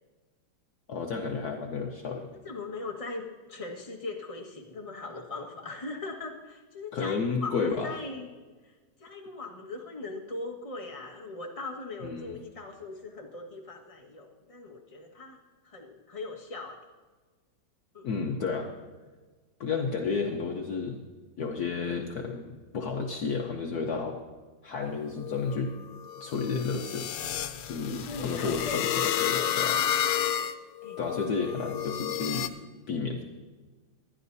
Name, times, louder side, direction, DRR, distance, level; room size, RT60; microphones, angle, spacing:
voice 1, 0.9-2.3 6.9-7.9 12.0-12.4 18.0-18.7 19.6-21.0 21.4-24.2 24.6-25.7 26.2-27.1 27.7-29.8 31.0-32.5 32.9-33.2, left 5 dB, 60° left, 1 dB, 1.3 m, -31 dB
voice 2, 2.4-8.3 8.6-8.7 9.0-15.4 15.6-16.8 17.9-18.1 28.0-29.9 30.8-31.6, left 3 dB, 20° left, -1 dB, 1.5 m, -40 dB
sound 1, 25.0-32.5, left 10 dB, 85° left, 1.5 m, -31 dB
26.5 x 11.5 x 2.7 m, 1.3 s
omnidirectional pair, 2.1 m